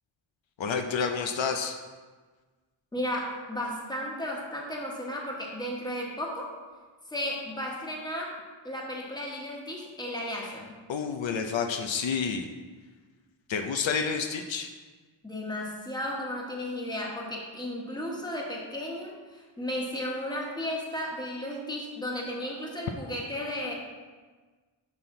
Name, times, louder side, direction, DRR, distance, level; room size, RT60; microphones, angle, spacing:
voice 1, 0.6-1.7 10.9-12.5 13.5-14.7, left 6 dB, 75° left, 5 dB, 0.6 m, -29 dB
voice 2, 2.9-6.5 7.1-8.3 8.6-10.8 15.2-23.7, left 1 dB, 10° left, -2 dB, 1.2 m, -34 dB
6.2 x 5.6 x 3.8 m, 1.4 s
wide cardioid pair, 125°, 46 cm